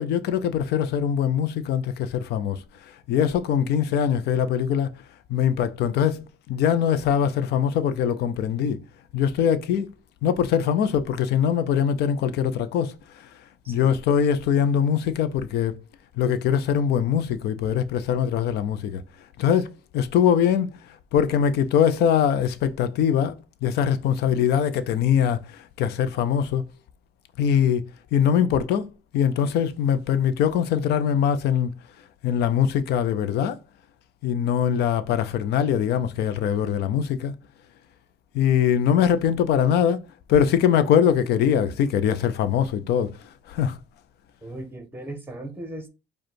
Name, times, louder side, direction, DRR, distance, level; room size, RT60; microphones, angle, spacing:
voice 1, 0.0-5.0 5.3-8.8 9.1-9.9 10.2-13.3 13.7-15.8 16.2-19.0 19.4-26.7 27.4-28.9 29.1-31.7 32.2-33.6 34.2-37.3 38.3-40.0 40.3-43.8, left 8 dB, 75° left, 0.6 m, -22 dB
voice 2, 13.6-14.0 44.4-45.9, right 1 dB, 10° right, 1.2 m, -37 dB
5.0 x 2.4 x 4.5 m
cardioid pair, 110°, 17 cm